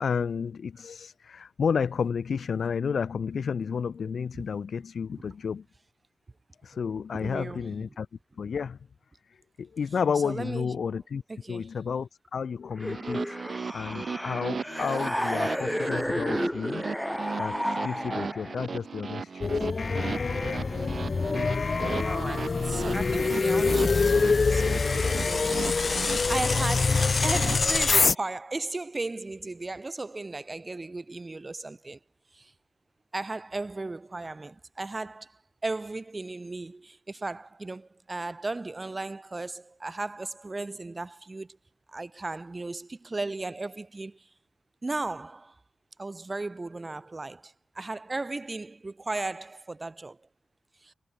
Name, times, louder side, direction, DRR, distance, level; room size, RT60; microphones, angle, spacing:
voice 1, 0.0-5.6 6.6-8.1 8.4-8.8 9.6-11.2 11.5-13.3 13.7-16.9 17.4-19.5, left 6 dB, 75° left, 3.2 m, -31 dB
voice 2, 7.1-7.7 10.2-10.8 11.3-11.7 22.0-25.5 26.3-32.0 32.3-32.5 33.1-41.6 41.9-44.3 44.8-45.6 46.0-50.2 50.8-50.9, right 2 dB, 35° right, 3.4 m, -36 dB
sound 1, 12.8-18.6, equal, 5° left, 3.9 m, -32 dB
sound 2, 12.8-27.6, right 5 dB, 60° right, 2.2 m, -37 dB
sound 3, 19.4-28.1, left 4 dB, 50° left, 1.1 m, -25 dB
cardioid pair, 60°, 0 cm